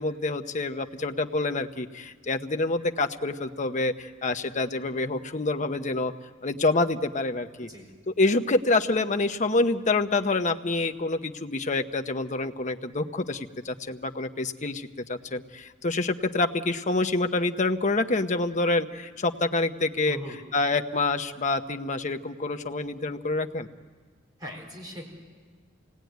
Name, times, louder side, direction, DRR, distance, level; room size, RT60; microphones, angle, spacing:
voice 1, 0.0-6.1 6.4-7.7 8.1-20.2 20.5-23.7, left 2 dB, 40° left, 7 dB, 0.9 m, -27 dB
voice 2, 20.1-20.4 24.4-25.1, equal, 20° right, 0 dB, 4.5 m, -39 dB
28.0 x 18.5 x 9.3 m, 1.5 s
head